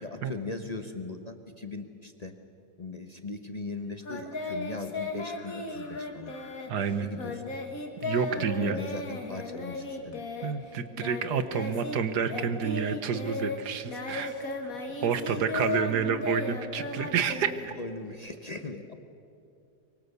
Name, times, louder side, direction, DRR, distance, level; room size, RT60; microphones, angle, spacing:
voice 1, 0.0-2.3 2.8-6.3 6.9-7.5 8.4-10.2 11.6-11.7 14.9-15.0 15.3-15.8 17.7-18.9, left 3 dB, 30° left, 7 dB, 0.8 m, -39 dB
Singing, 4.0-12.0 12.3-18.1, left 3 dB, 50° left, 2.3 m, -36 dB
voice 2, 6.7-7.1 8.0-8.8 10.4-14.3 15.0-17.7, right 7 dB, 65° right, 11 dB, 1.6 m, -29 dB
24.0 x 23.5 x 6.9 m, 2.5 s
omnidirectional pair, 2.0 m